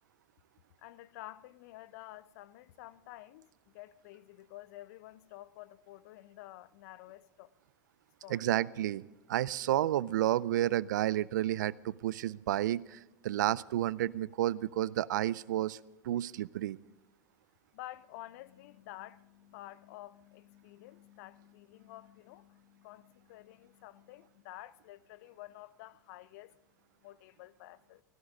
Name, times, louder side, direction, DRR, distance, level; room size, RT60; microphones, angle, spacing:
voice 1, 0.8-3.5 3.7-7.5 8.2-8.4 17.7-26.6 27.0-28.0, left 16 dB, 60° left, 0.6 m, -50 dB
voice 2, 8.3-9.0 9.3-15.8 16.0-16.8, right 13 dB, 75° right, 0.5 m, -31 dB
17.0 x 17.0 x 3.8 m
hypercardioid pair, 90°, 10 cm